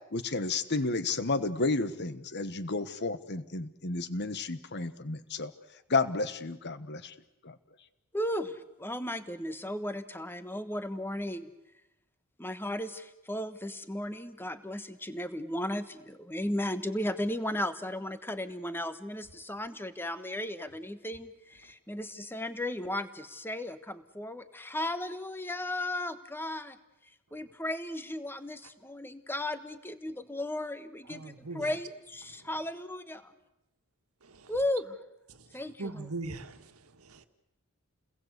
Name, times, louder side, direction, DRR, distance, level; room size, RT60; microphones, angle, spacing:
voice 1, 0.1-5.5 5.9-7.1 7.4-7.6, left 3 dB, 50° left, 1.4 m, -31 dB
voice 2, 8.1-11.5 12.4-26.8 27.3-33.3 34.5-35.0 35.5-36.1, left 1 dB, 10° left, 1.4 m, -35 dB
voice 3, 31.1-31.7 32.4-32.5 34.2-34.5 35.3-37.2, right 3 dB, 80° right, 1.8 m, -42 dB
29.5 x 21.0 x 8.2 m
head